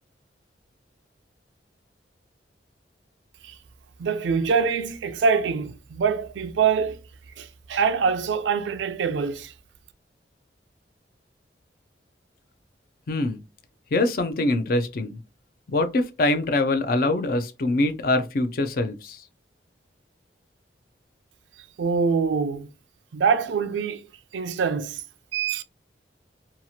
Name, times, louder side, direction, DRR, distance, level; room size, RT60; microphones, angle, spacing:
voice 1, 4.0-7.0 7.4-9.5 21.8-22.7 23.1-24.0 24.3-25.0 25.3-25.6, right 5 dB, 90° right, 0.4 m, -24 dB
voice 2, 13.1-13.4 13.9-15.2 15.7-19.2, left 2 dB, 55° left, 0.4 m, -24 dB
2.8 x 2.4 x 2.8 m
head